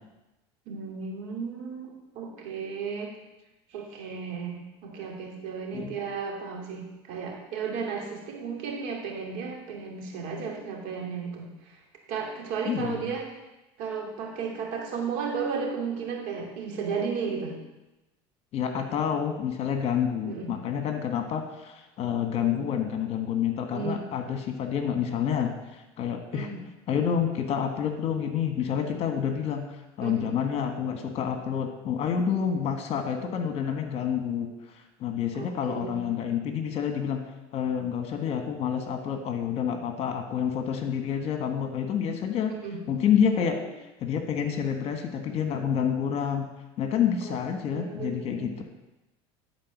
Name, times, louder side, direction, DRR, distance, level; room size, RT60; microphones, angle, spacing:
voice 1, 0.7-3.2 3.7-11.8 12.1-13.2 13.8-17.6 20.2-20.5 22.4-22.7 23.7-24.1 26.3-26.6 30.0-30.3 35.3-36.1 42.5-42.8 43.4-43.6 47.2-47.4 47.6-48.6, right 5 dB, 65° right, 0 dB, 2.6 m, -34 dB
voice 2, 12.7-13.0 18.5-26.5 26.9-29.6 30.0-34.5 35.0-37.2 37.5-42.5 42.9-43.5 44.0-46.5 46.8-48.6, left 8 dB, 45° left, 5 dB, 1.5 m, -28 dB
11.5 x 4.6 x 6.1 m, 1.0 s
supercardioid pair, 100°, 14 cm